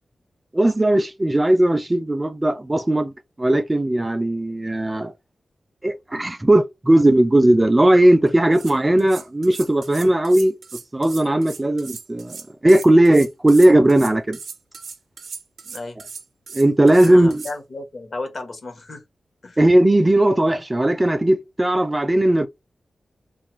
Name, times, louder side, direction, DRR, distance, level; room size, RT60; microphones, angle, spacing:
voice 1, 0.5-3.1 3.4-5.1 5.8-10.6 10.9-12.4 12.6-14.4 16.5-17.4 19.6-22.5, right 1 dB, 20° right, 0.3 m, -17 dB
sound 1, 8.3-8.4 8.5-17.6, right 5 dB, 90° right, 0.4 m, -38 dB
voice 2, 15.6-16.0 17.0-19.0 19.4-19.6, left 3 dB, 55° left, 0.8 m, -34 dB
2.4 x 2.3 x 3.0 m
wide cardioid pair, 105°, 0 cm